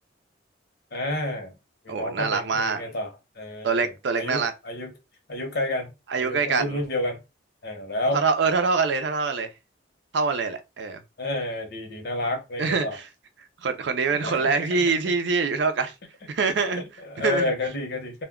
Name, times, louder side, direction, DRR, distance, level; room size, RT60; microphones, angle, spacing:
voice 1, 0.9-1.5 1.8-3.1 3.4-4.9 5.3-5.9 6.2-7.2 7.6-8.2 11.2-13.0 14.1-15.0 17.0-18.2, left 1 dB, 60° left, 0.9 m, -30 dB
voice 2, 1.9-2.8 3.6-4.5 6.1-6.8 8.1-9.5 10.1-11.0 12.6-13.1 13.6-15.9 16.3-16.8 17.2-17.4, right 4 dB, 65° right, 0.5 m, -24 dB
2.2 x 2.2 x 3.5 m
head